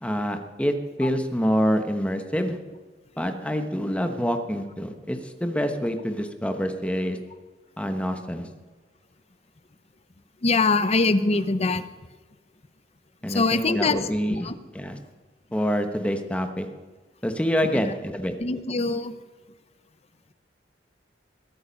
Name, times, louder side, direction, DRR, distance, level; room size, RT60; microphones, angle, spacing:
voice 1, 0.0-2.6 3.2-7.2 7.8-8.5 13.2-15.0 15.5-16.7 17.2-18.3, equal, 5° left, 6 dB, 1.1 m, -26 dB
voice 2, 10.4-11.8 13.3-14.0 14.5-14.6 18.4-19.1, left 3 dB, 35° left, 12 dB, 0.7 m, -22 dB
21.0 x 8.9 x 5.3 m, 1.3 s
head